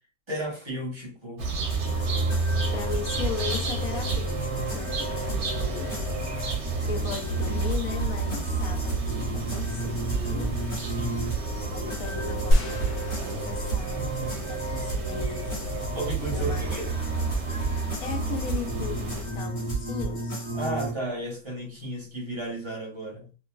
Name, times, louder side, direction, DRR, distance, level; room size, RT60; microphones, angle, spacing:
voice 1, 0.3-1.5 10.9-11.3 15.9-16.9 20.5-23.3, right 1 dB, 25° right, 0.6 m, -34 dB
sound 1, 1.4-19.4, right 2 dB, 55° right, 0.9 m, -32 dB
sound 2, 1.7-20.9, right 3 dB, 25° left, 1.1 m, -32 dB
voice 2, 2.7-5.9 6.9-10.5 11.6-15.7 16.3-16.8 18.0-20.4, left 6 dB, 75° left, 1.0 m, -37 dB
sound 3, 12.5-14.8, equal, 55° left, 0.7 m, -27 dB
2.9 x 2.3 x 2.2 m
omnidirectional pair, 1.6 m